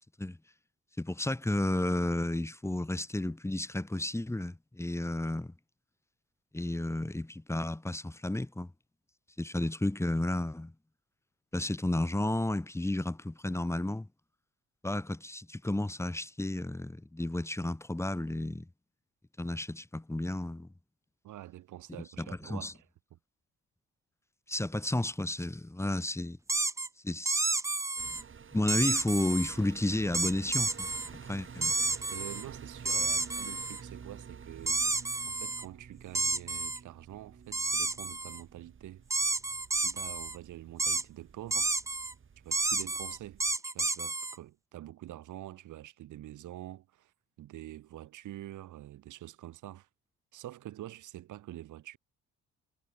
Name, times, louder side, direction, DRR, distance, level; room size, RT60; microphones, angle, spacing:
voice 1, 1.0-5.5 6.5-8.7 9.4-10.7 11.5-14.1 14.8-18.7 19.4-20.7 22.2-22.7 24.5-26.4 27.0-27.5 28.1-28.2 28.5-30.9 31.3-31.7, left 1 dB, 10° left, 2.2 m, -32 dB
voice 2, 21.2-22.8 23.1-23.2 32.1-39.0 39.7-41.8 42.4-47.1 47.4-49.9 50.3-52.0, right 13 dB, 80° right, 4.4 m, -46 dB
sound 1, 26.5-26.9 27.3-28.2 28.7-29.6 30.1-31.1 31.6-32.4 32.8-33.8 34.7-35.6 36.1-36.8 37.5-38.4 39.1-40.4 40.8-41.0 41.5-42.1 42.5-44.4, right 3 dB, 10° right, 0.5 m, -31 dB
sound 2, 28.0-43.6, right 6 dB, 40° right, 3.9 m, -50 dB
cardioid pair, 90°, 30 cm